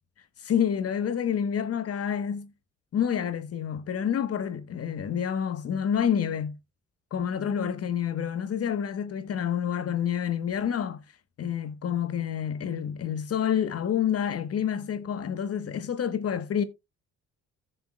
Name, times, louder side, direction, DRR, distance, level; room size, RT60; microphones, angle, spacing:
voice 1, 0.4-2.5 2.9-6.6 7.1-11.0 11.4-16.6, left 8 dB, 50° left, 1.1 m, -28 dB
15.0 x 6.9 x 2.2 m
cardioid pair, 90°, 30 cm